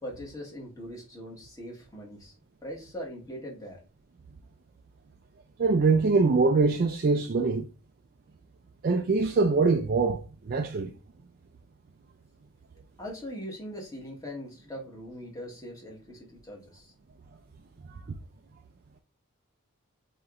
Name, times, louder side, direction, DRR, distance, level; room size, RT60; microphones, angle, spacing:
voice 1, 0.0-2.3 2.6-3.8 13.0-16.9, equal, 15° left, 1.3 m, -41 dB
voice 2, 5.6-7.7 8.8-10.9 17.9-18.2, right 4 dB, 45° right, 0.4 m, -24 dB
7.4 x 2.9 x 2.4 m
head